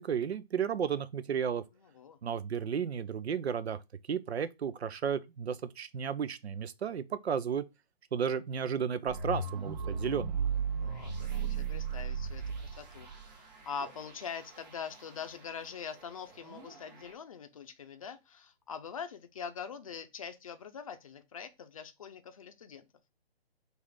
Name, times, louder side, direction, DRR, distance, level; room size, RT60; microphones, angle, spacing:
voice 1, 0.0-1.6 2.2-3.8 4.1-7.6 8.1-10.4, right 7 dB, 85° right, 0.6 m, -33 dB
voice 2, 1.8-2.2 10.8-22.9, left 6 dB, 35° left, 0.5 m, -43 dB
sound 1, 9.1-15.0 16.4-17.1, right 6 dB, 40° right, 1.1 m, -36 dB
4.1 x 2.5 x 4.8 m
hypercardioid pair, 155°, 31 cm